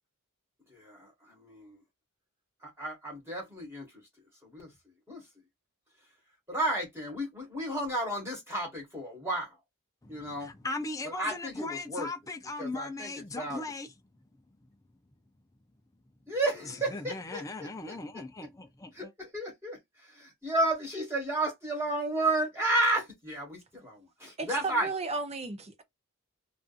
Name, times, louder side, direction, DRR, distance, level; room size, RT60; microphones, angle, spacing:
voice 1, 0.7-1.8 2.6-4.0 4.4-5.3 6.5-9.6 10.1-10.5 11.1-12.1 12.6-13.7 16.3-17.9 18.9-24.9, right 2 dB, 10° right, 1.4 m, -33 dB
voice 2, 10.0-13.9 16.9-19.1, left 2 dB, 15° left, 0.4 m, -38 dB
voice 3, 24.4-25.8, right 3 dB, 30° right, 0.6 m, -34 dB
2.6 x 2.4 x 2.4 m
head